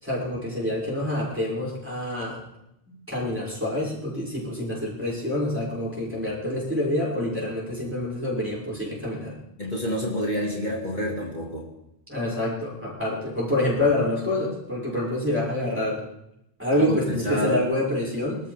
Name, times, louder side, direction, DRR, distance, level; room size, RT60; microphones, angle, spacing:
voice 1, 0.0-2.4 2.9-9.3 12.1-16.0 16.6-18.4, left 1 dB, 10° right, -6 dB, 6.3 m, -27 dB
voice 2, 9.6-11.6 16.7-17.6, equal, 45° left, -3 dB, 2.3 m, -28 dB
26.0 x 13.5 x 3.5 m, 0.83 s
omnidirectional pair, 1.0 m